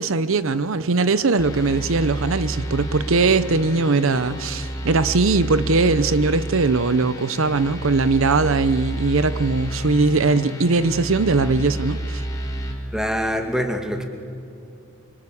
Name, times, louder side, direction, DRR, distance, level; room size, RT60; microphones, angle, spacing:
voice 1, 0.0-12.2, right 3 dB, 65° right, 14 dB, 0.7 m, -20 dB
sound 1, 1.4-12.7, right 1 dB, 15° left, 4.2 m, -30 dB
voice 2, 12.9-14.1, equal, 5° right, 4 dB, 2.2 m, -24 dB
27.5 x 25.0 x 8.4 m, 2.6 s
head